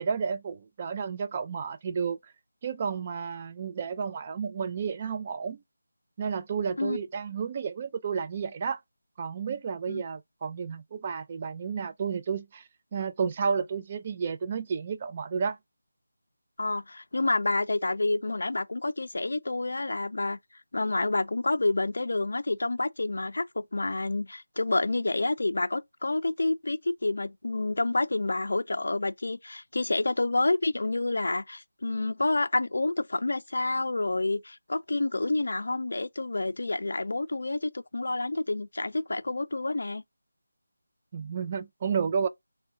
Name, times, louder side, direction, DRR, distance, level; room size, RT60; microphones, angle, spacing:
voice 1, 0.0-2.3 2.6-5.6 6.2-8.8 9.2-12.6 12.9-15.6 41.1-42.3, right 6 dB, 25° right, 0.3 m, -31 dB
voice 2, 16.6-20.4 20.7-40.0, left 2 dB, 70° left, 0.4 m, -28 dB
3.5 x 2.2 x 3.6 m
figure-of-eight pair, 170°, 0 cm